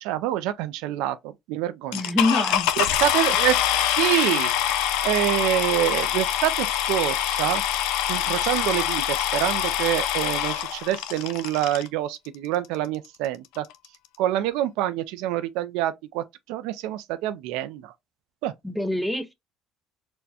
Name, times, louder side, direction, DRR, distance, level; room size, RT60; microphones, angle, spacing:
voice 1, 0.0-2.0 2.8-3.6 4.0-4.5 5.0-7.6 8.1-13.6 14.2-17.9 18.4-18.5, right 13 dB, 80° right, 0.3 m, -26 dB
sound 1, 1.9-11.9 12.6-12.7 13.2-13.3 13.5-13.9, left 11 dB, 80° left, 0.4 m, -25 dB
voice 2, 1.9-2.7 18.6-19.3, left 2 dB, ahead, 0.6 m, -25 dB
4.3 x 2.1 x 2.7 m
supercardioid pair, 100°, 0 cm